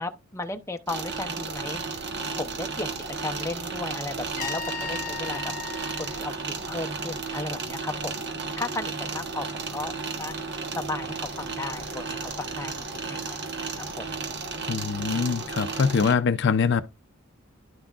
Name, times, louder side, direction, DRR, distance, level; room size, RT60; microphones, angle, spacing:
voice 1, 0.0-1.8 2.3-2.9 3.2-5.5 6.0-8.3 8.6-10.4 10.7-12.8 13.1-13.4 13.7-14.1, left 2 dB, 15° left, 0.7 m, -35 dB
sound 1, 0.9-16.1, right 4 dB, 55° right, 1.3 m, -33 dB
Trumpet, 4.4-7.3, left 7 dB, 40° left, 1.2 m, -37 dB
voice 2, 14.7-16.8, left 5 dB, 60° left, 0.5 m, -23 dB
11.0 x 5.9 x 2.4 m
head